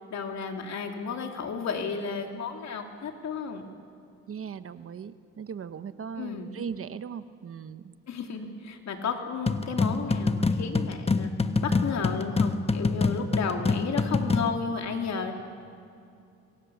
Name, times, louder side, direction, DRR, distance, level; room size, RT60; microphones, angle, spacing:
voice 1, 0.1-3.7 6.2-6.5 8.1-11.3 11.6-15.3, left 5 dB, 65° left, 3 dB, 3.3 m, -33 dB
voice 2, 4.3-7.9, right 7 dB, 45° right, 12 dB, 1.1 m, -38 dB
sound 1, 9.5-14.6, left 3 dB, 20° left, 1.1 m, -26 dB
27.0 x 23.5 x 7.2 m, 2.5 s
cardioid pair, 90°, 30 cm